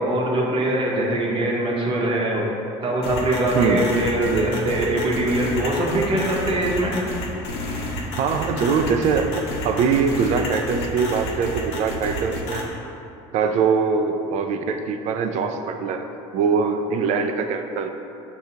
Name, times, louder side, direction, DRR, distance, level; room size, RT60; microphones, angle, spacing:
voice 1, 0.0-2.5 2.8-6.9, right 1 dB, 35° right, -2 dB, 0.8 m, -22 dB
sound 1, 3.0-12.6, left 1 dB, 75° left, 0.7 m, -30 dB
voice 2, 3.5-3.9 8.2-12.7 13.3-16.1 16.3-17.9, right 5 dB, 55° right, 6 dB, 0.4 m, -22 dB
6.5 x 2.3 x 2.8 m, 2.8 s
supercardioid pair, 90°, 14 cm